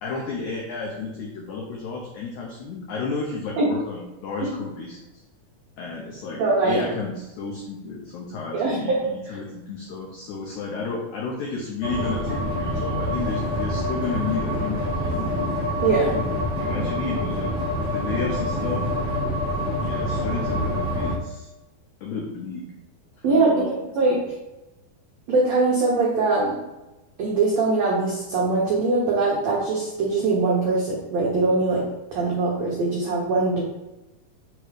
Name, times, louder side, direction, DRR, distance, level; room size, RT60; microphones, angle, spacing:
voice 1, 0.0-5.0 5.8-15.3 15.9-16.2 16.6-17.5 17.8-18.9 19.8-21.5 22.0-22.7 23.2-23.7, left 4 dB, 90° left, -1 dB, 1.6 m, -32 dB
voice 2, 6.4-6.9 8.5-9.0 15.8-16.2 23.2-23.7 24.0-24.2 25.3-26.6 27.2-31.8 32.1-33.6, right 3 dB, 85° right, -4 dB, 1.5 m, -22 dB
sound 1, 11.8-21.2, left 1 dB, 40° right, 0.5 m, -26 dB
6.3 x 3.1 x 4.9 m, 1.0 s
omnidirectional pair, 4.5 m